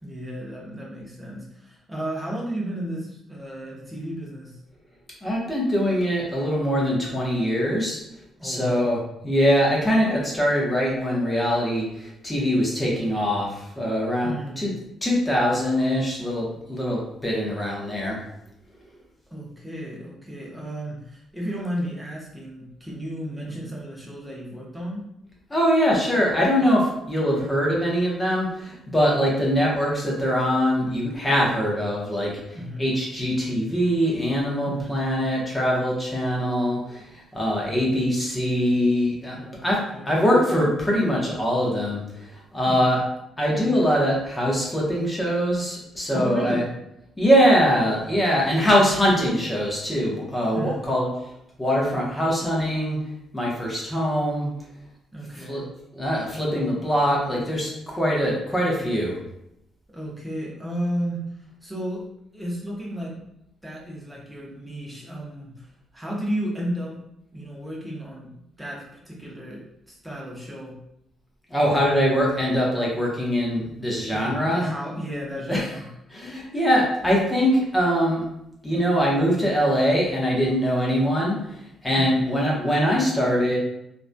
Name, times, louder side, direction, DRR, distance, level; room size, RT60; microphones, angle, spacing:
voice 1, 0.0-4.6 8.4-8.9 14.2-14.7 19.3-25.0 32.5-32.9 34.6-35.2 39.3-39.6 39.9-40.1 42.6-43.0 46.1-46.7 50.5-50.9 55.1-55.6 59.9-62.0 62.3-63.2 63.6-66.9 67.3-70.7 74.1-75.9 81.9-82.3, equal, 10° right, -4 dB, 0.9 m, -33 dB
voice 2, 5.2-8.0 8.4-14.7 15.0-18.2 25.5-37.0 37.3-39.4 39.6-39.8 40.1-42.3 42.5-43.0 43.4-46.6 47.2-51.1 51.6-53.0 53.3-54.5 55.3-55.6 55.9-59.2 71.5-74.7 75.5-75.8 76.1-78.2 78.6-81.6 81.8-83.6, equal, 15° left, -3 dB, 1.0 m, -23 dB
3.0 x 2.6 x 2.2 m, 0.82 s
cardioid pair, 90°, 0 cm